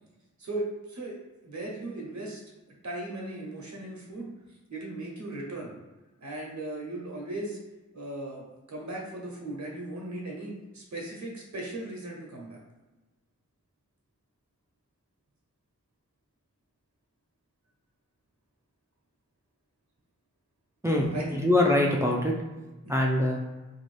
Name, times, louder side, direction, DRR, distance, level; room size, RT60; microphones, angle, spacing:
voice 1, 0.4-1.2 1.4-2.4 2.8-4.3 4.7-5.7 6.2-7.6 7.9-12.6 21.1-21.4 22.8-22.9, right 2 dB, 70° right, -2 dB, 0.7 m, -37 dB
voice 2, 20.8-22.3 22.9-23.4, left 1 dB, 10° right, -1 dB, 0.4 m, -24 dB
2.6 x 2.3 x 3.1 m, 1.1 s
wide cardioid pair, 55°, 29 cm